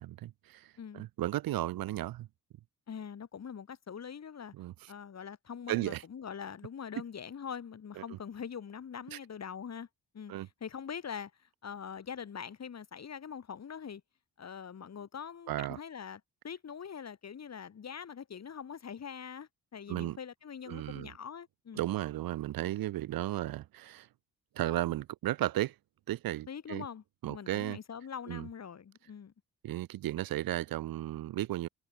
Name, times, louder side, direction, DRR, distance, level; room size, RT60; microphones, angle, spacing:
voice 1, 0.0-2.3 4.5-4.9 5.7-6.0 8.0-8.2 9.1-9.2 10.3-10.5 15.5-15.8 19.9-20.2 20.7-21.1 21.8-24.1 24.5-25.7 26.1-26.8 27.2-27.8 28.3-28.5 29.6-31.7, right 14 dB, 75° right, 0.7 m, -34 dB
voice 2, 2.9-4.5 4.9-9.9 10.1-14.0 14.4-21.9 26.5-29.3, left 7 dB, 45° left, 1.8 m, -43 dB
cardioid pair, 75°, 35 cm